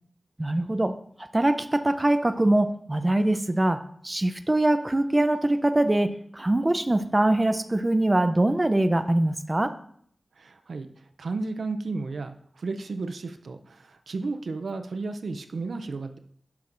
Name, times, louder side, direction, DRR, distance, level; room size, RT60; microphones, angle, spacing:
voice 1, 0.4-0.9 1.3-3.8 4.0-6.1 6.4-9.7, right 1 dB, 25° right, 9 dB, 0.5 m, -23 dB
voice 2, 10.4-10.9 11.2-16.2, right 3 dB, 90° right, 8 dB, 0.5 m, -33 dB
11.5 x 6.0 x 2.6 m, 0.63 s
wide cardioid pair, 80°, 0 cm